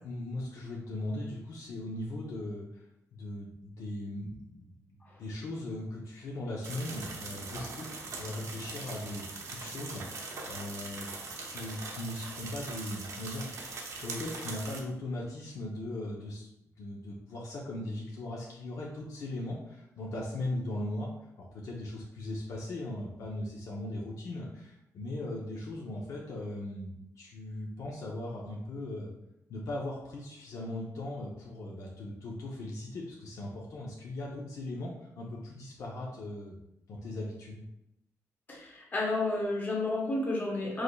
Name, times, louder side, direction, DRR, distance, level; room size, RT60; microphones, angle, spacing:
voice 1, 0.0-11.1 11.4-13.6 13.9-16.5 16.8-21.1 21.4-29.1 29.5-36.6 36.9-37.6, left 1 dB, 70° left, -2 dB, 0.7 m, -39 dB
sound 1, 6.6-14.8, right 3 dB, 60° right, 0.7 m, -41 dB
voice 2, 38.5-40.8, left 2 dB, 30° left, -2 dB, 1.1 m, -31 dB
4.8 x 3.9 x 2.3 m, 0.84 s
wide cardioid pair, 145°, 6 cm